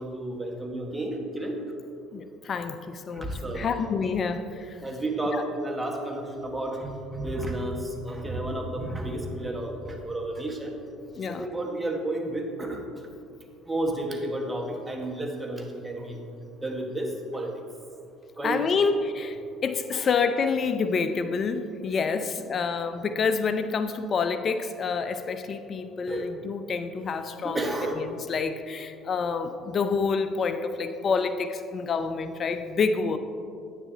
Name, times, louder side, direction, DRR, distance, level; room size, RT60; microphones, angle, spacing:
voice 1, 0.0-1.6 3.1-3.9 4.8-10.7 11.3-12.8 13.6-16.2 16.6-17.5 18.4-18.9 19.9-20.1 22.2-22.3 26.1-26.3 27.4-28.1, right 1 dB, 15° right, 1 dB, 1.5 m, -31 dB
voice 2, 2.1-4.8 5.3-5.4 11.2-11.5 18.4-19.4 19.6-27.6 28.0-33.2, left 5 dB, 45° left, 10 dB, 0.5 m, -28 dB
10.0 x 9.2 x 2.9 m, 2.5 s
supercardioid pair, 75°, 0 cm